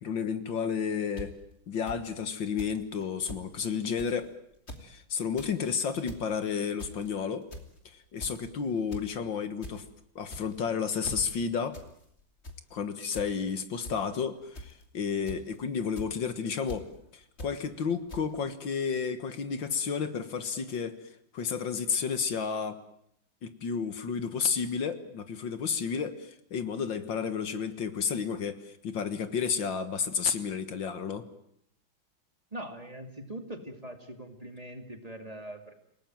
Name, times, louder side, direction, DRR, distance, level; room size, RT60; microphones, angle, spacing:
voice 1, 0.0-1.3 1.7-4.3 4.8-7.4 7.9-9.9 10.2-11.8 12.7-16.8 17.1-21.0 21.3-22.8 23.4-31.2, left 6 dB, 70° left, 11 dB, 2.2 m, -31 dB
sound 1, 1.2-1.3 1.9-2.0 2.6-2.8 3.0-3.1 3.3-3.4 4.0-4.2 4.5-4.8 5.2-5.5 5.9-6.2 6.8-7.1 7.5-7.8 8.2-8.5 8.9-9.1 9.4-9.7 10.2-10.6 11.0-11.2 11.7-11.9 12.2-12.6 13.1-13.3 13.8-13.9 14.5-14.8 15.3-15.5 16.0-16.1 16.7-16.8 17.4-17.5 18.1-18.2, equal, 30° left, 3.0 m, -41 dB
voice 2, 32.5-35.7, right 1 dB, 20° right, 5 dB, 2.7 m, -42 dB
28.5 x 18.0 x 9.2 m, 0.71 s
omnidirectional pair, 2.1 m